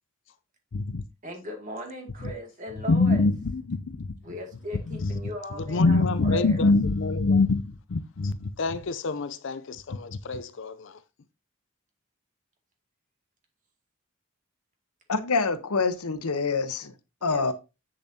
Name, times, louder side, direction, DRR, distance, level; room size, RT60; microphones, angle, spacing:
voice 1, 0.7-1.0 2.9-4.2 5.0-5.1 5.7-11.0, left 3 dB, 55° left, 0.5 m, -25 dB
voice 2, 1.2-3.3 4.2-6.6 17.2-17.5, equal, 35° right, 2.3 m, -38 dB
voice 3, 15.1-16.9 17.2-17.5, left 4 dB, 85° left, 0.9 m, -26 dB
7.8 x 7.0 x 2.8 m
head